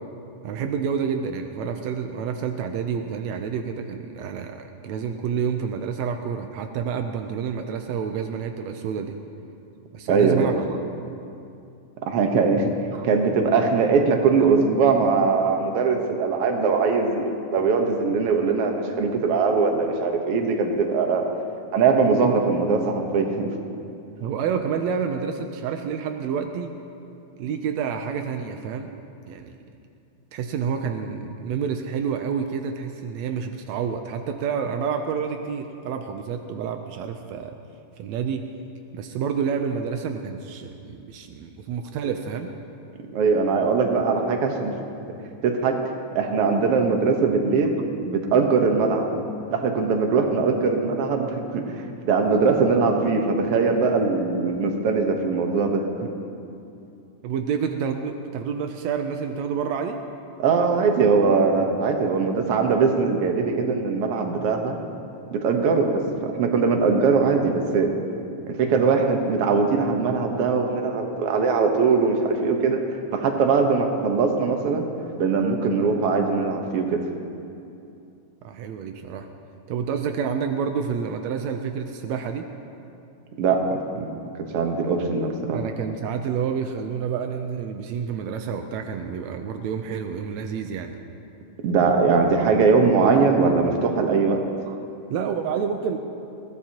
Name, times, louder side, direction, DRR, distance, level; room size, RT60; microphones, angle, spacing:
voice 1, 0.4-9.2 9.9-10.8 12.9-13.1 24.2-26.7 27.4-28.9 29.2-29.5 30.3-37.6 38.0-38.4 38.9-42.5 57.2-60.0 68.7-69.0 78.4-79.3 79.7-82.5 85.5-91.0 93.1-93.2 94.7-94.8 95.1-96.0, right 7 dB, 85° right, 6 dB, 1.5 m, -29 dB
voice 2, 10.1-10.5 12.0-12.7 13.0-21.3 21.7-23.5 43.1-44.7 45.4-45.8 46.1-47.8 48.0-49.0 49.5-55.8 60.4-64.7 65.3-67.9 68.5-72.8 73.1-74.9 75.2-77.0 83.4-84.2 84.5-85.6 91.6-94.4, right 4 dB, 60° right, 3 dB, 1.6 m, -21 dB
21.5 x 17.0 x 2.9 m, 2.6 s
omnidirectional pair, 3.9 m